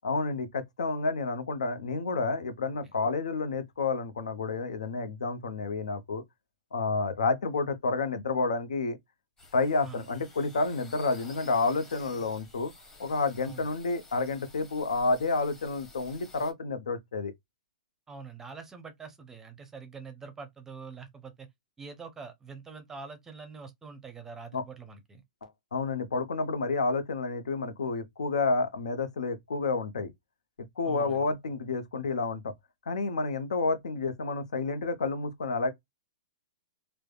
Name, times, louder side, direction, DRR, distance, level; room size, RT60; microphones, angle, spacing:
voice 1, 0.0-6.2 6.7-9.0 9.5-12.7 13.0-17.3 24.5-24.6 25.4-30.1 30.8-32.5 32.9-35.7, left 3 dB, 85° left, 0.7 m, -30 dB
sound 1, 9.4-16.5, left 2 dB, 15° left, 0.9 m, -52 dB
voice 2, 18.1-21.5 21.8-25.2 30.8-31.2, right 5 dB, 10° right, 0.6 m, -45 dB
3.3 x 2.1 x 2.2 m
hypercardioid pair, 145°, 4 cm